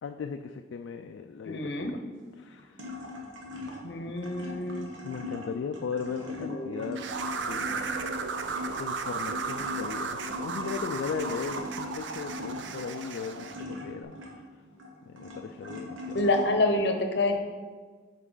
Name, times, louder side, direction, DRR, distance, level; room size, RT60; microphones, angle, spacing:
voice 1, 0.0-2.0 2.4-2.9 4.0-4.2 5.0-7.0 7.4-7.9 8.8-14.4 15.1-16.4, left 6 dB, 75° left, 6 dB, 0.3 m, -37 dB
voice 2, 1.4-1.9 3.8-4.9 6.4-6.8 16.1-17.4, left 2 dB, 60° left, 5 dB, 0.8 m, -27 dB
sound 1, 2.2-16.4, left 2 dB, 85° right, 1.2 m, -40 dB
sound 2, 7.0-13.6, right 5 dB, 70° right, 0.5 m, -35 dB
8.0 x 4.6 x 3.9 m, 1.5 s
head